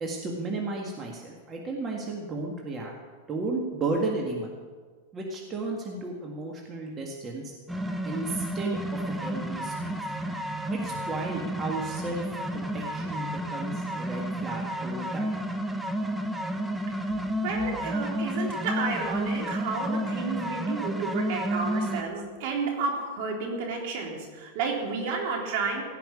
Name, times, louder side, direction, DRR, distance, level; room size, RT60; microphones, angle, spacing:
voice 1, 0.0-2.9 3.3-4.6 5.1-7.5 8.0-9.9 10.7-12.2 12.5-15.4, right 3 dB, 25° right, 0 dB, 1.9 m, -34 dB
sound 1, 7.7-22.0, right 1 dB, 5° right, 0.9 m, -31 dB
voice 2, 17.4-25.8, right 4 dB, 60° right, 1 dB, 3.6 m, -31 dB
16.5 x 6.0 x 9.8 m, 1.5 s
supercardioid pair, 135°, 0 cm